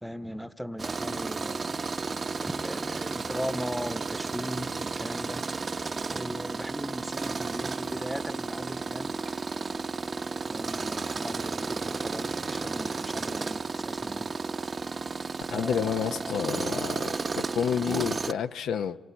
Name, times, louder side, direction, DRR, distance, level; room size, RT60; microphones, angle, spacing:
voice 1, 0.0-1.9 2.4-5.4 6.1-9.1 10.5-14.4 15.4-16.5 17.8-18.1, equal, ahead, 0.9 m, -38 dB
Tools, 0.8-18.3, right 4 dB, 40° right, 0.8 m, -33 dB
voice 2, 15.5-19.0, left 8 dB, 85° left, 0.8 m, -30 dB
26.5 x 23.5 x 8.3 m
cardioid pair, 80°, 0 cm